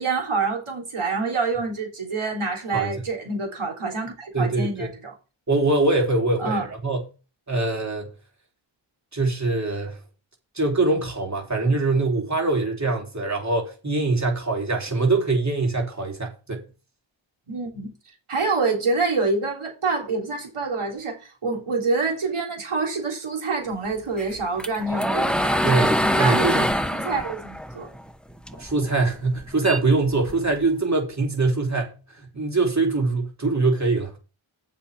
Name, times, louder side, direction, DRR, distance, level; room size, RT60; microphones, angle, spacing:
voice 1, 0.0-5.1 6.4-6.7 17.5-17.9 18.3-26.7 26.9-27.9, right 4 dB, 90° right, 3.5 m, -27 dB
voice 2, 4.3-4.9 5.5-7.0 7.5-8.1 9.1-10.0 10.5-16.6 25.6-26.7 28.6-34.1, right 3 dB, 35° right, 3.4 m, -23 dB
sound 1, 24.2-28.7 29.1-30.6, equal, ahead, 1.2 m, -24 dB
7.7 x 5.9 x 6.8 m
cardioid pair, 45°, 49 cm